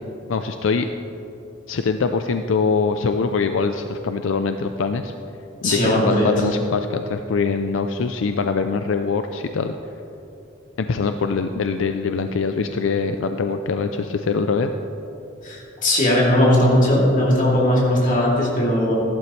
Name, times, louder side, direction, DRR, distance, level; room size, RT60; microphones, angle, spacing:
voice 1, 0.3-0.9 1.7-5.1 5.6-9.8 10.8-14.7, left 4 dB, 80° left, 7 dB, 0.4 m, -23 dB
voice 2, 5.6-6.5 15.4-18.9, left 1 dB, 40° left, -4 dB, 2.7 m, -18 dB
14.5 x 12.0 x 3.2 m, 2.9 s
head